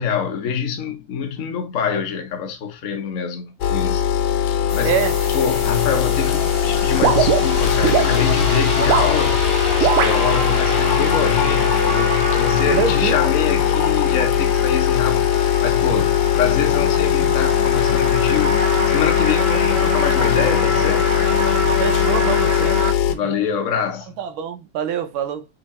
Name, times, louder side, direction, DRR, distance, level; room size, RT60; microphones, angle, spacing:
voice 1, 0.0-4.1 4.5-5.0 5.3-9.5 9.8-21.1 23.1-24.1, left 7 dB, 60° left, 0.8 m, -25 dB
sound 1, 3.6-23.1, left 10 dB, 80° left, 1.5 m, -19 dB
sound 2, 4.7-22.9, equal, 30° left, 1.5 m, -26 dB
voice 2, 4.8-5.2 12.7-13.2 21.8-22.8 23.1-23.3 24.2-25.5, right 8 dB, 70° right, 1.6 m, -25 dB
sound 3, 7.0-8.1 8.7-9.1 9.8-10.2, right 11 dB, 85° right, 1.6 m, -19 dB
3.7 x 3.3 x 4.2 m
omnidirectional pair, 2.4 m